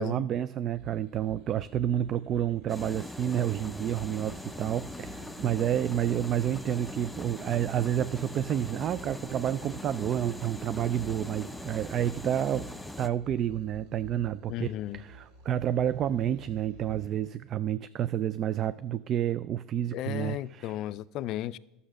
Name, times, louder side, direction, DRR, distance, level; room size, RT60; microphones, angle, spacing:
voice 1, 0.0-20.8, right 10 dB, 45° right, 0.3 m, -30 dB
sound 1, 0.7-17.1, right 1 dB, 70° right, 4.1 m, -50 dB
sound 2, 2.7-13.1, left 1 dB, 5° left, 0.5 m, -42 dB
voice 2, 14.5-15.0 19.9-21.6, left 13 dB, 55° left, 0.4 m, -34 dB
11.5 x 7.0 x 6.2 m
supercardioid pair, 100°, 0 cm